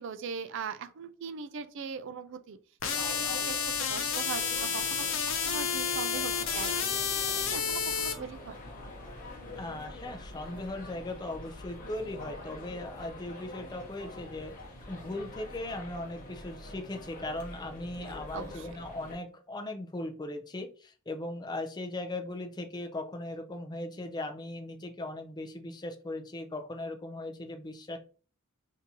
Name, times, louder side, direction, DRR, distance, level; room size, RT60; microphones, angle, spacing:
voice 1, 0.0-2.6 3.1-6.9 7.3-8.6 18.0-18.8, right 6 dB, 60° right, 11 dB, 0.4 m, -41 dB
sound 1, 2.8-8.1, left 6 dB, 60° left, 0.6 m, -30 dB
sound 2, 2.9-19.1, left 1 dB, 40° left, 1.0 m, -45 dB
voice 2, 9.6-14.6 14.9-28.0, left 2 dB, 20° left, 4 dB, 0.4 m, -38 dB
3.6 x 2.7 x 2.8 m, 0.38 s
head